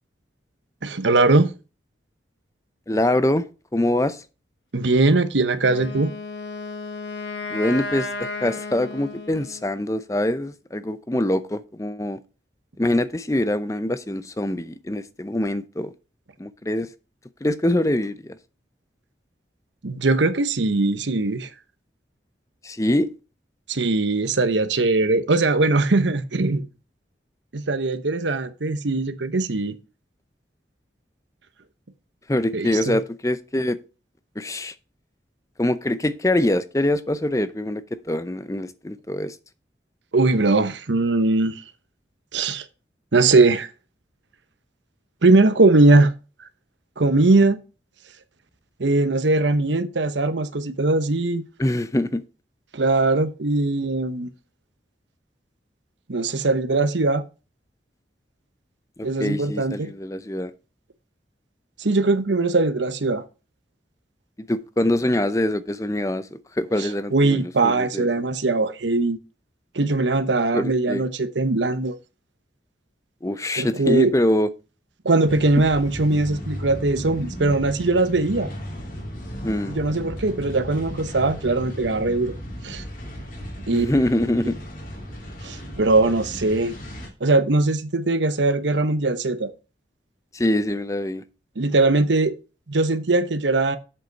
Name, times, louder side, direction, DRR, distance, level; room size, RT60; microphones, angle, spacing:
voice 1, 0.8-1.5 4.7-6.1 19.8-21.5 23.7-26.7 27.5-29.8 32.5-33.0 40.1-41.6 42.3-42.6 43.1-43.7 45.2-46.1 47.0-47.6 48.8-51.4 52.7-54.3 56.1-57.3 59.0-59.9 61.8-63.2 66.8-69.2 69.7-71.9 73.6-74.1 75.0-78.5 79.7-82.3 82.6-82.8 83.7-83.9 85.4-86.7 87.2-89.5 91.6-92.3 92.7-93.8, right 2 dB, 85° right, 1.0 m, -20 dB
voice 2, 2.9-3.5 3.7-4.2 7.5-12.2 12.8-15.9 16.4-16.9 17.4-18.4 22.6-23.1 32.3-33.8 34.4-34.7 35.6-39.4 51.6-52.2 59.0-60.5 64.4-68.1 70.5-71.0 73.2-74.5 79.4-79.8 83.7-84.6 90.3-91.2, left 1 dB, 15° left, 0.6 m, -24 dB
Wind instrument woodwind instrument, 5.6-9.7, left 3 dB, 80° left, 1.5 m, -33 dB
sound 1, 75.3-87.1, equal, 45° left, 2.6 m, -35 dB
7.8 x 6.7 x 4.5 m
head